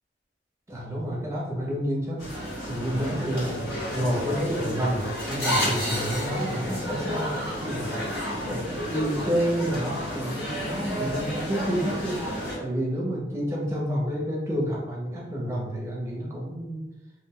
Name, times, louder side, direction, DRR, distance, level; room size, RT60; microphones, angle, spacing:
voice 1, 0.7-2.2 2.7-3.7 3.9-7.9 8.2-12.3 12.6-16.8, equal, 15° right, -4 dB, 0.6 m, -29 dB
sound 1, 2.2-12.6, equal, 85° left, 1.3 m, -31 dB
2.2 x 2.1 x 3.6 m, 1.0 s
head